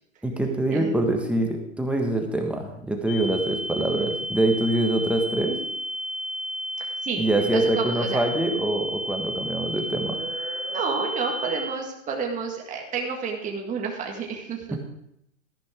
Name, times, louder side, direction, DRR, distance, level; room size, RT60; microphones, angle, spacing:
voice 1, 0.2-5.6 7.2-10.2 14.7-14.8, right 1 dB, 5° right, 2 dB, 1.5 m, -25 dB
sound 1, 3.1-11.6, equal, 70° left, 1.8 m, -32 dB
voice 2, 6.8-8.2 9.9-14.8, right 5 dB, 20° right, 0 dB, 1.7 m, -31 dB
13.5 x 11.0 x 3.7 m, 0.76 s
hypercardioid pair, 125°, 40 cm